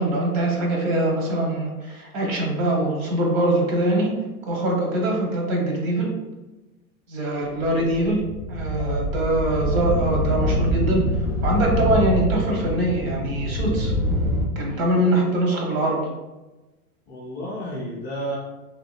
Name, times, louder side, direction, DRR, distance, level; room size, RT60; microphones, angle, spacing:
voice 1, 0.0-4.1 4.4-6.1 7.1-8.2 8.5-11.1 11.4-13.9 14.5-16.1, right 1 dB, 65° right, 0 dB, 1.1 m, -23 dB
sound 1, 7.6-14.4, equal, 85° right, 1.3 m, -25 dB
voice 2, 17.1-18.4, equal, 20° left, -5 dB, 0.4 m, -32 dB
2.9 x 2.5 x 2.4 m, 1.1 s
hypercardioid pair, 120°, 44 cm